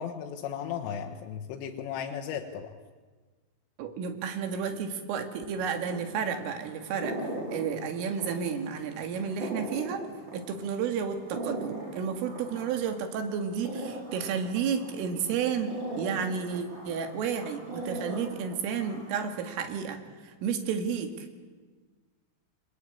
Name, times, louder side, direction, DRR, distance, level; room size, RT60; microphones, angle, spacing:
voice 1, 0.0-2.7, left 8 dB, 85° left, 3 dB, 3.9 m, -35 dB
voice 2, 3.8-7.1 7.5-10.0 10.3-21.3, right 7 dB, 85° right, 6 dB, 4.8 m, -32 dB
sound 1, 5.5-19.4, right 2 dB, 25° right, 4.0 m, -40 dB
29.5 x 23.0 x 8.7 m, 1.4 s
omnidirectional pair, 5.7 m